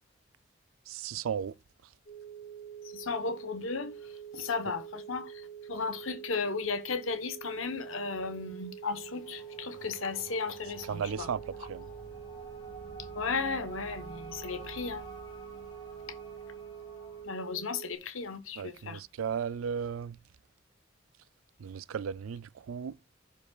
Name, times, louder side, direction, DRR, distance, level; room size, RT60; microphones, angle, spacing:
voice 1, 0.9-1.5 10.9-11.4 11.7-11.8 18.6-20.2 21.6-23.0, right 7 dB, 85° right, 0.4 m, -35 dB
sound 1, 2.1-18.0, right 9 dB, 45° left, 1.3 m, -46 dB
voice 2, 2.9-3.9 4.3-11.3 13.1-15.1 17.2-19.0, left 4 dB, 85° left, 1.1 m, -35 dB
sound 2, 8.9-17.2, right 2 dB, 20° left, 5.2 m, -49 dB
15.5 x 5.1 x 2.4 m
head